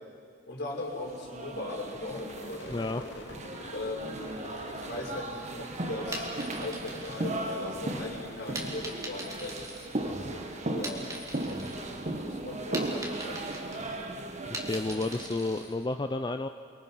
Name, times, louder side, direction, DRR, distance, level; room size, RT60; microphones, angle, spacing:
voice 1, 0.5-2.9 3.7-4.4 4.7-6.3 6.6-9.6 10.0-11.1 11.9-13.9, left 2 dB, 60° left, -2 dB, 4.9 m, -39 dB
sound 1, 1.0-15.7, right 1 dB, 40° right, 1.4 m, -37 dB
Crowd / Fireworks, 2.0-7.4 7.7-8.3 8.6-12.2, left 2 dB, 85° left, 2.1 m, -48 dB
voice 2, 2.7-3.0 14.5-16.5, left 2 dB, 25° left, 8 dB, 0.5 m, -31 dB
sound 2, 6.1-7.9 8.5-10.3 10.7-12.0 12.3-15.7, right 1 dB, 20° right, 2.8 m, -41 dB
29.0 x 23.0 x 5.6 m, 2.4 s
head